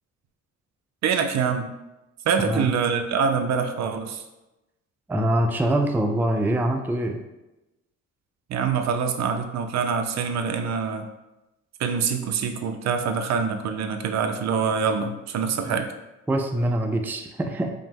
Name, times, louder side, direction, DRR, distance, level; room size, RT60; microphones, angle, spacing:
voice 1, 1.0-1.7 2.3-4.2 8.5-11.1 11.8-15.9, right 6 dB, 60° right, 7 dB, 0.5 m, -25 dB
voice 2, 5.1-7.2 15.6-15.8 16.3-17.7, right 1 dB, 5° right, 4 dB, 0.3 m, -24 dB
4.9 x 2.0 x 3.5 m, 0.98 s
cardioid pair, 90°, 30 cm